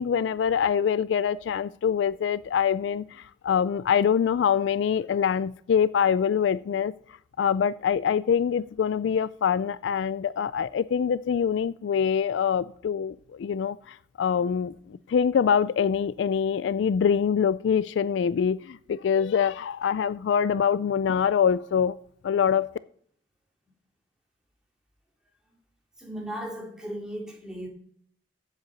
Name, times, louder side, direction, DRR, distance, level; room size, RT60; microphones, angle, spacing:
voice 1, 0.0-6.9 7.4-22.0 22.2-22.7, left 7 dB, 75° left, 0.3 m, -24 dB
voice 2, 26.0-27.7, equal, 5° right, 2.5 m, -36 dB
8.0 x 7.5 x 6.6 m
head